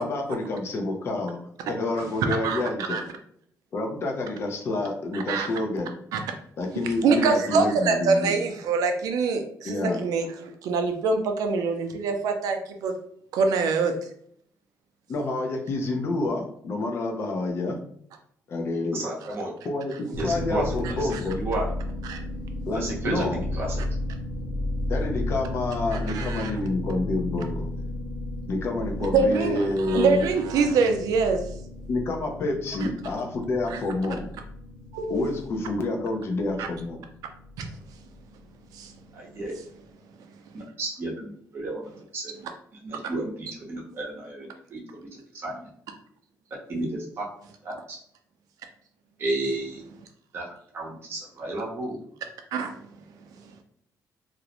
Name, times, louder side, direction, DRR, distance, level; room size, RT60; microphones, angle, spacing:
voice 1, 0.0-1.4 1.7-3.0 3.7-5.9 6.6-8.3 9.6-10.0 15.1-17.8 18.5-19.0 19.6-21.4 22.7-23.4 24.9-27.7 28.5-30.2 31.9-34.2 35.1-37.0, left 2 dB, 45° left, 3 dB, 0.4 m, -28 dB
voice 2, 2.3-2.6 2.9-3.0 5.1-5.5 6.1-6.2 7.0-12.9 13.3-13.9 22.1-22.2 26.1-26.5 29.0-31.4 33.7-33.8 34.9-35.3 36.6-36.7 37.6-37.7 38.7-38.9 52.5-52.7, right 4 dB, 85° right, 5 dB, 0.4 m, -24 dB
voice 3, 18.9-19.5 20.1-21.1 21.3-21.7 22.7-23.8 39.1-39.5 40.5-42.3 42.7-45.7 46.7-47.3 47.6-48.0 49.2-49.8 50.3-50.4 50.7-52.0, right 2 dB, 40° right, -2 dB, 0.7 m, -32 dB
sound 1, 20.1-39.6, left 1 dB, 70° left, 0.9 m, -34 dB
2.4 x 2.0 x 2.8 m, 0.65 s
cardioid pair, 165°, 6 cm